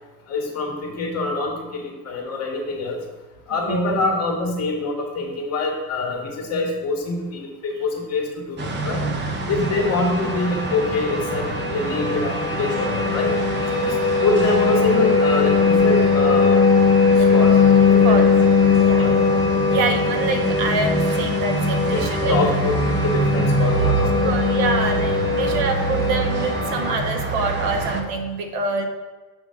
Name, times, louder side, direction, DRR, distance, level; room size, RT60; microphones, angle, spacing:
voice 1, 0.3-3.0 3.5-9.1 9.5-13.3 13.7-14.0 14.2-16.6 17.3-17.6 18.0-18.3 18.9-19.4 21.9-24.3, left 3 dB, 35° left, 0 dB, 1.9 m, -25 dB
voice 2, 3.5-4.0 12.7-12.8 17.2-17.3 18.0-18.3 18.9-19.1 19.7-22.4 24.2-28.8, right 3 dB, 75° right, 5 dB, 1.2 m, -26 dB
sound 1, 8.6-28.0, right 3 dB, 25° right, 0.8 m, -26 dB
sound 2, 9.6-27.0, left 5 dB, 10° left, 0.7 m, -20 dB
7.5 x 3.6 x 5.8 m, 1.2 s
supercardioid pair, 125°, 44 cm